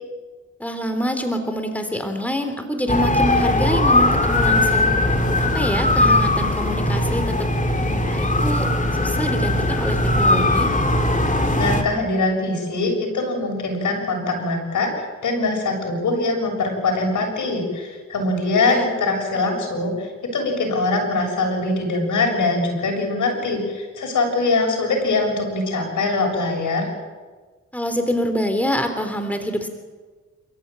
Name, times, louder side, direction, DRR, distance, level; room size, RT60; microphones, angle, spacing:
voice 1, 0.6-4.9 5.3-7.5 7.8-8.6 9.0-10.7 18.6-18.9 27.7-29.7, equal, 5° left, 7 dB, 3.4 m, -26 dB
sound 1, 2.9-11.8, left 2 dB, 25° left, 2.9 m, -19 dB
voice 2, 11.6-26.9, left 3 dB, 80° left, 2 dB, 6.9 m, -22 dB
27.5 x 14.5 x 9.0 m, 1.4 s
cardioid pair, 65°, 30 cm